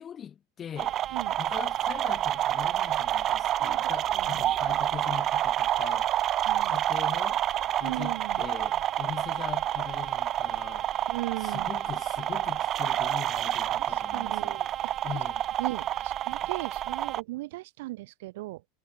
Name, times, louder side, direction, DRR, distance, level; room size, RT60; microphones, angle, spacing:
voice 1, 0.0-1.0 1.4-6.1 6.6-7.4 7.8-10.9 11.4-14.6 15.0-15.4, left 8 dB, 30° left, 6.1 m, -41 dB
sound 1, 0.8-17.2, right 12 dB, 35° right, 2.1 m, -28 dB
voice 2, 4.1-4.8 6.5-6.8 7.8-8.4 11.1-11.7 13.7-14.9 15.6-18.6, right 19 dB, 75° right, 3.8 m, -38 dB
supercardioid pair, 130°, 0 cm